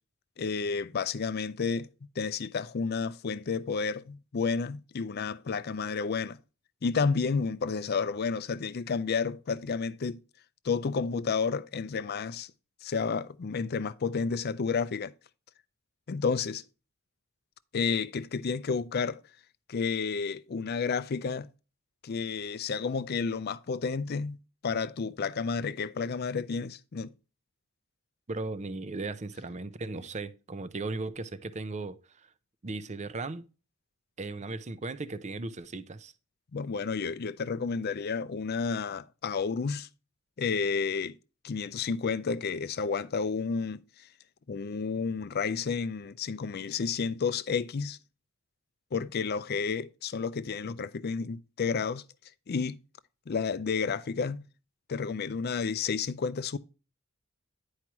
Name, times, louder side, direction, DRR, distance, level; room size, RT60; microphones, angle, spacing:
voice 1, 0.4-1.9 2.2-6.4 6.8-10.2 10.6-12.5 12.8-15.1 16.1-16.6 17.7-19.2 19.7-21.5 22.0-24.4 24.6-27.1 36.5-39.9 40.4-41.1 41.4-44.1 44.5-48.0 48.9-52.0 52.5-52.8 53.3-54.5 54.9-56.6, left 5 dB, 50° left, 0.5 m, -31 dB
voice 2, 28.3-32.3 32.6-33.4 34.2-36.1, right 3 dB, 35° right, 0.6 m, -37 dB
10.5 x 4.8 x 2.9 m
head